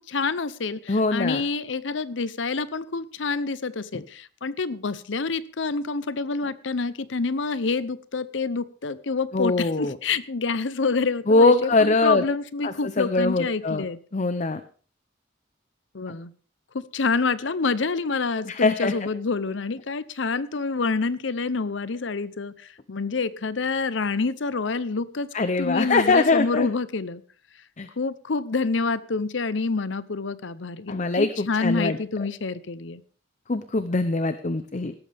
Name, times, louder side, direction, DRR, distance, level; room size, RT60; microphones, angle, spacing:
voice 1, 0.0-14.0 15.9-16.3 16.7-25.3 25.6-27.2 28.0-33.0, left 4 dB, 70° left, 16 dB, 0.8 m, -27 dB
voice 2, 0.9-1.4 3.9-4.0 9.3-10.0 11.3-12.2 12.6-13.8 14.1-14.6 16.1-16.2 18.5-19.0 25.3-26.7 27.8-27.9 30.9-32.0 33.5-34.9, left 3 dB, 40° left, 11 dB, 0.7 m, -22 dB
18.0 x 13.0 x 3.5 m, 0.42 s
head